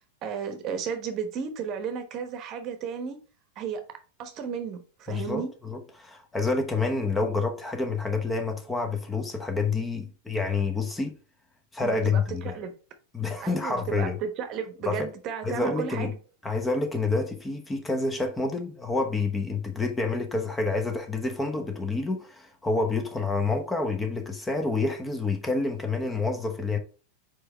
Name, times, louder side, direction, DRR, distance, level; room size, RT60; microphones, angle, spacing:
voice 1, 0.2-3.2 3.6-3.8 4.2-5.5 11.8-12.7 13.4-16.2, right 6 dB, 35° right, 1.1 m, -33 dB
voice 2, 5.1-11.1 11.7-12.6 13.1-14.2 14.8-15.1 15.4-16.1 16.4-26.8, left 3 dB, 10° left, 1.0 m, -28 dB
4.9 x 4.6 x 4.4 m
figure-of-eight pair, 90°, 0 cm